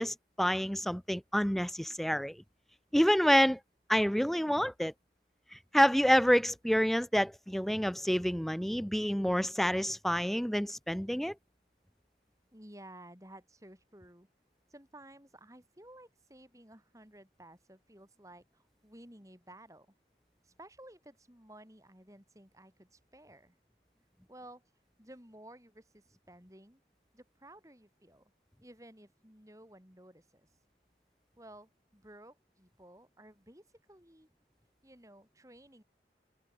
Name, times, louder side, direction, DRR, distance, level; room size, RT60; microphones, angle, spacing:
voice 1, 0.0-2.4 2.9-3.6 3.9-4.9 5.5-11.3, equal, ahead, 0.4 m, -28 dB
voice 2, 12.5-14.3 14.7-19.9 20.4-23.6 24.3-24.6 25.0-26.8 27.1-28.2 28.6-30.5 31.4-34.3 34.8-35.8, right 1 dB, 20° right, 5.8 m, -55 dB
head